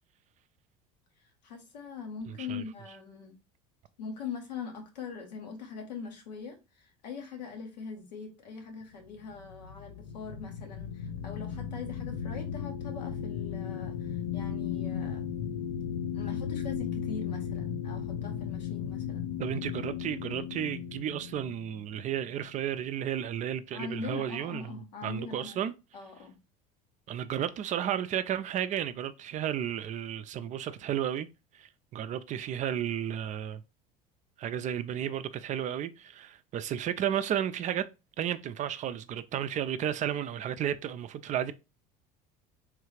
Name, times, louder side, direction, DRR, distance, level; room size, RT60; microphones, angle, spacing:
voice 1, 1.4-3.4 4.0-15.3 16.1-19.3 23.7-25.6 25.9-26.4, left 5 dB, 85° left, 0.9 m, -42 dB
sound 1, 9.1-22.8, left 8 dB, 65° left, 0.5 m, -36 dB
voice 2, 19.4-25.7 27.1-31.3 31.5-33.6 34.4-37.9 38.2-41.5, right 10 dB, 35° right, 0.4 m, -33 dB
3.3 x 2.3 x 3.2 m
hypercardioid pair, 80°, 21 cm